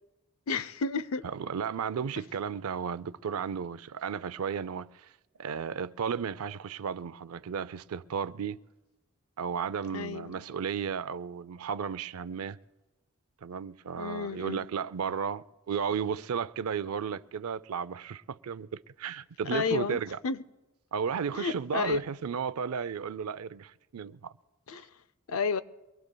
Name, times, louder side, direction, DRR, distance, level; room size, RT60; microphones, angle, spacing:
voice 1, 0.5-1.2 9.9-10.4 14.0-14.6 19.5-20.0 20.2-20.4 21.3-22.0 24.7-24.9 25.3-25.6, left 5 dB, 70° left, 0.5 m, -31 dB
voice 2, 1.2-5.1 5.4-8.6 9.4-12.6 13.4-20.2 20.9-24.3, right 7 dB, 75° right, 0.4 m, -34 dB
24.0 x 20.5 x 2.2 m
head